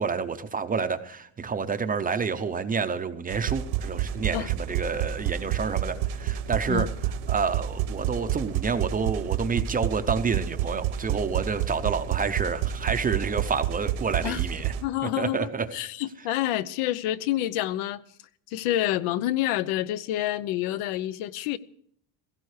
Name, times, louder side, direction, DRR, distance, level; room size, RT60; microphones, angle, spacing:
voice 1, 0.0-6.9 7.3-14.7 15.2-15.7, right 5 dB, 20° right, 0.6 m, -29 dB
sound 1, 3.3-14.8, right 10 dB, 90° right, 1.6 m, -29 dB
voice 2, 14.8-18.0 18.5-21.6, left 13 dB, 85° left, 1.0 m, -28 dB
17.0 x 15.5 x 4.9 m
cardioid pair, 170°, 49 cm